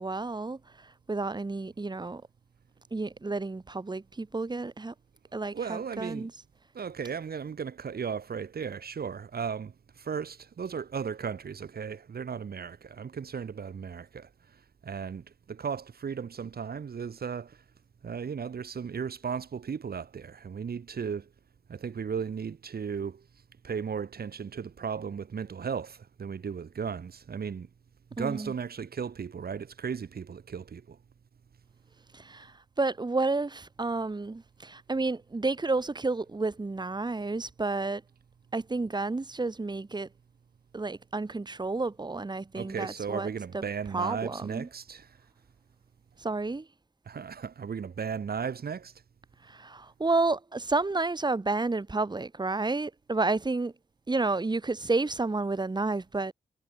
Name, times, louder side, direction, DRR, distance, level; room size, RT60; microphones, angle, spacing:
voice 1, 0.0-2.2 2.9-4.9 5.3-6.3 28.2-28.5 32.1-38.0 38.5-40.1 40.7-43.6 43.9-44.7 46.2-46.7 49.4-53.7 54.1-56.3, right 3 dB, 25° right, 2.2 m, -31 dB
voice 2, 5.5-6.3 6.7-17.6 18.0-21.3 21.7-23.3 23.6-27.7 28.2-31.0 42.5-45.2 47.1-48.9, right 6 dB, 70° right, 2.0 m, -36 dB
wide cardioid pair, 125°, 16 cm